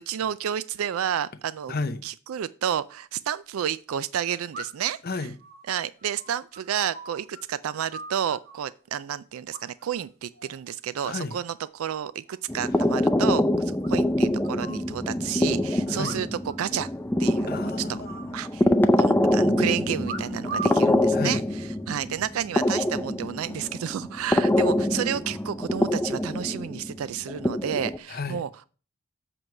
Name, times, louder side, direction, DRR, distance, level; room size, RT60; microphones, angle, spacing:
voice 1, 0.0-1.7 2.0-5.0 5.7-13.4 13.9-16.3 16.6-16.9 17.2-17.5 17.9-18.0 18.3-18.7 19.0-21.4 21.9-28.6, right 9 dB, 80° right, 0.4 m, -31 dB
voice 2, 1.7-2.0 5.0-5.4 11.0-11.4 12.7-12.8 15.9-16.1 17.5-18.4 21.1-21.4 28.1-28.4, left 3 dB, 45° left, 0.7 m, -32 dB
sound 1, 4.5-5.0 5.4-7.4 7.7-8.7 9.5-10.0 10.3-10.7 11.1-11.7 11.9-12.0 12.3-12.4 12.6-12.7 13.0-13.1 13.8-14.9 15.9-16.6 16.8-16.9 17.2-17.6 18.0-19.0 20.0-20.9 21.6-22.0, right 3 dB, 50° right, 1.5 m, -39 dB
sound 2, 12.5-28.0, left 1 dB, 10° left, 0.4 m, -25 dB
7.6 x 4.6 x 6.4 m
head